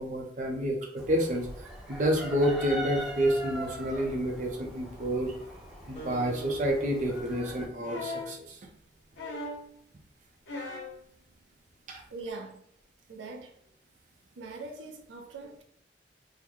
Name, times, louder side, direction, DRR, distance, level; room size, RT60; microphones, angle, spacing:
voice 1, 0.0-1.5 1.9-5.3 5.9-8.6 11.9-12.0, equal, 45° right, 1 dB, 0.6 m, -29 dB
Chicken rooster, 1.0-7.7, equal, ahead, 0.8 m, -41 dB
Acoustic guitar, 6.0-8.7, right 3 dB, 35° left, 1.3 m, -47 dB
sound 1, 7.8-8.4 9.2-9.7 10.5-11.0 12.2-12.3, left 2 dB, 85° left, 0.8 m, -38 dB
voice 2, 12.1-12.6 13.1-13.5 14.4-15.6, right 3 dB, 85° right, 3 dB, 0.5 m, -42 dB
3.7 x 2.1 x 3.0 m, 0.67 s
head